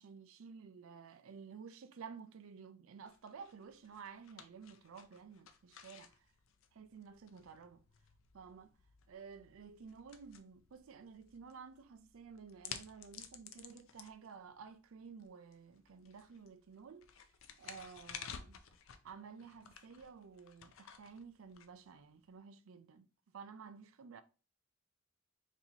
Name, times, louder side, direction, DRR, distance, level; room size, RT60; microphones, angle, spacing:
voice 1, 0.0-6.2 6.7-7.8 8.3-8.7 9.1-17.1 17.6-18.6 19.0-23.1 23.3-24.2, right 6 dB, 75° right, 0.4 m, -53 dB
sound 1, 3.1-22.3, left 8 dB, 70° left, 0.5 m, -55 dB
4.0 x 2.8 x 2.8 m
head